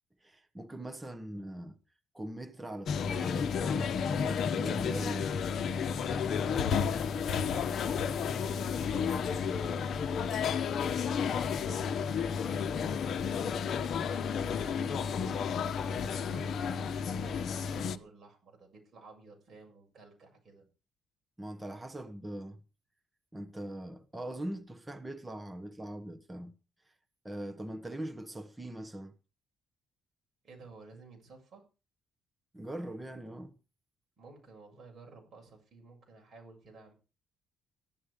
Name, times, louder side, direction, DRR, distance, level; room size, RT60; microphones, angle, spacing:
voice 1, 0.2-1.8 2.1-5.3 21.4-22.6 23.3-26.5 27.2-29.1 32.5-33.6, right 1 dB, 10° right, 1.2 m, -41 dB
sound 1, 2.9-18.0, left 6 dB, 50° left, 1.1 m, -32 dB
voice 2, 5.9-13.8 14.2-20.6 30.4-31.6 34.2-36.9, right 3 dB, 35° right, 7.4 m, -53 dB
15.5 x 11.5 x 5.2 m
cardioid pair, 160°, 0 cm